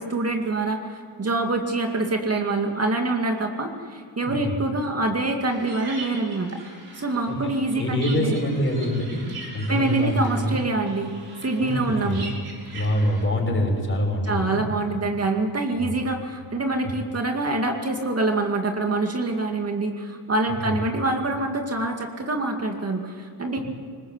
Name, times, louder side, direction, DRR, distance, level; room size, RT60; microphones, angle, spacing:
voice 1, 0.0-6.5 7.0-8.3 9.7-11.1 11.4-12.3 14.2-23.6, right 2 dB, 35° right, 3 dB, 2.3 m, -25 dB
voice 2, 4.2-4.6 7.3-9.2 9.5-10.5 11.6-12.2 12.7-14.6 15.8-15.9 16.8-16.9 20.6-20.8 23.6-23.7, equal, 30° left, 0 dB, 6.5 m, -25 dB
sound 1, 5.5-13.2, right 3 dB, 60° right, 6.6 m, -42 dB
20.0 x 20.0 x 8.1 m, 2.1 s
cardioid pair, 80°, 43 cm